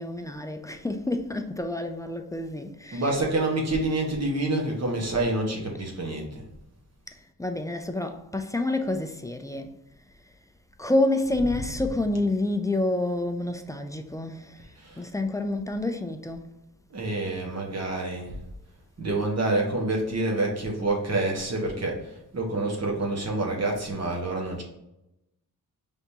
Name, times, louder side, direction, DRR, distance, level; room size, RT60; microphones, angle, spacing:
voice 1, 0.0-3.2 7.1-9.7 10.8-16.5, left 2 dB, 10° left, 0.3 m, -28 dB
voice 2, 2.9-6.4 11.7-11.9 14.8-15.0 16.9-18.3 19.0-24.6, right 2 dB, 45° right, 1.3 m, -27 dB
5.2 x 3.5 x 2.7 m
wide cardioid pair, 140°, 36 cm